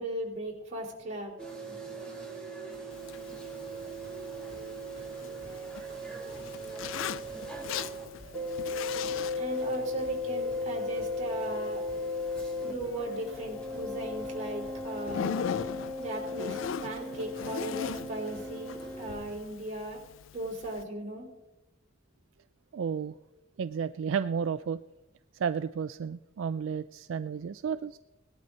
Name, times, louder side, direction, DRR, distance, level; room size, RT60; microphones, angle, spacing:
voice 1, 0.0-1.3 9.4-11.8 12.6-15.3 16.0-20.0 20.3-21.3, right 1 dB, 35° right, -2 dB, 4.0 m, -37 dB
sound 1, 1.4-8.0 8.3-12.7 13.0-19.2, left 2 dB, 5° left, 3.1 m, -37 dB
Zipper (clothing), 2.9-20.8, left 7 dB, 80° left, 0.4 m, -41 dB
sound 2, 3.7-19.5, right 1 dB, 60° right, 2.3 m, -51 dB
voice 2, 22.7-23.1 23.6-24.8 25.4-28.0, right 6 dB, 75° right, 13 dB, 0.4 m, -32 dB
18.5 x 12.0 x 3.9 m, 1.0 s
head